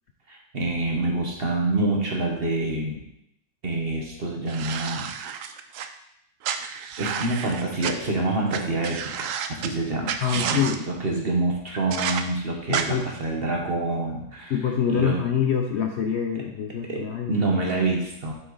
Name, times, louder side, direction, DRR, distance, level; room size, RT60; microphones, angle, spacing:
voice 1, 0.3-3.0 3.6-5.1 7.0-14.5 14.9-15.2 16.8-18.3, right 2 dB, 40° right, 0 dB, 1.4 m, -27 dB
sound 1, 4.5-5.9 6.4-7.9 8.5-8.6 8.8-9.7 10.0-10.8 11.9-12.2 12.7-12.8, right 8 dB, 70° right, 0.9 m, -30 dB
voice 2, 10.2-10.8 12.7-13.1 14.5-17.3, left 8 dB, 60° left, 3 dB, 0.8 m, -25 dB
7.5 x 6.1 x 4.0 m, 0.79 s
omnidirectional pair, 1.6 m